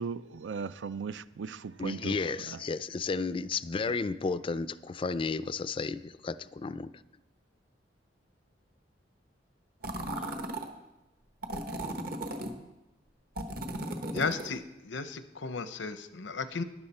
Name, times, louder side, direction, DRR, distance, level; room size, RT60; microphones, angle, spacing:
voice 1, 0.0-2.1, right 5 dB, 85° right, 0.4 m, -37 dB
voice 2, 1.8-6.9, left 4 dB, 30° left, 0.3 m, -33 dB
sound 1, 9.8-10.7 11.4-12.5 13.4-14.6, right 1 dB, 55° right, 1.2 m, -36 dB
voice 3, 14.1-16.6, left 4 dB, 85° left, 0.7 m, -35 dB
12.0 x 10.5 x 4.3 m
head